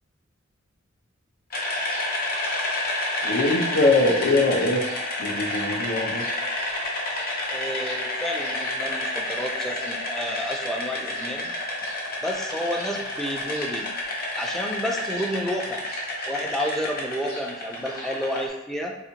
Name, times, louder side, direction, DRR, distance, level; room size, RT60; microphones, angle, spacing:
sound 1, 1.5-18.4, left 1 dB, 50° left, 0.7 m, -30 dB
voice 1, 3.2-4.8 5.2-6.2, left 2 dB, 80° left, -2 dB, 0.7 m, -22 dB
voice 2, 7.5-11.5 12.2-13.9 14.3-15.8 16.3-19.0, equal, ahead, 0 dB, 0.3 m, -30 dB
4.0 x 2.4 x 2.8 m, 0.92 s
head